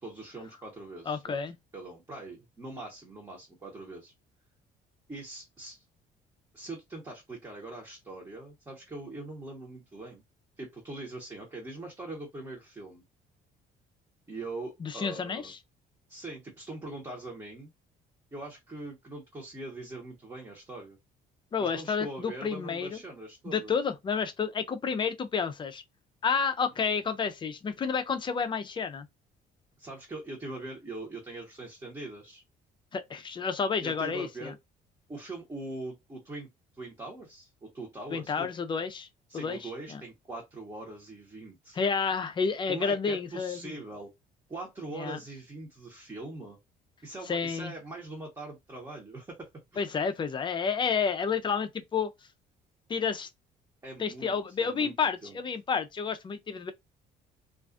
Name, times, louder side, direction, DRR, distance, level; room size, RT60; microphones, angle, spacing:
voice 1, 0.0-1.4 1.7-4.1 5.1-5.8 6.5-10.2 10.6-13.0 14.3-15.5 16.1-17.7 18.3-21.0 21.6-23.7 29.8-32.4 33.8-34.5 35.1-36.5 36.8-38.5 39.3-41.8 42.7-44.1 44.5-46.6 47.0-49.9 53.8-54.9 55.2-55.4, right 2 dB, 20° right, 0.9 m, -42 dB
voice 2, 1.1-1.6 14.8-15.6 21.5-23.0 23.5-25.8 26.2-29.1 32.9-34.5 38.1-39.1 39.3-39.6 39.9-40.0 41.8-43.8 45.0-45.2 47.3-47.7 49.8-52.1 52.9-53.3 54.0-56.7, left 6 dB, 30° left, 0.4 m, -30 dB
2.4 x 2.3 x 2.4 m
cardioid pair, 110°, 17 cm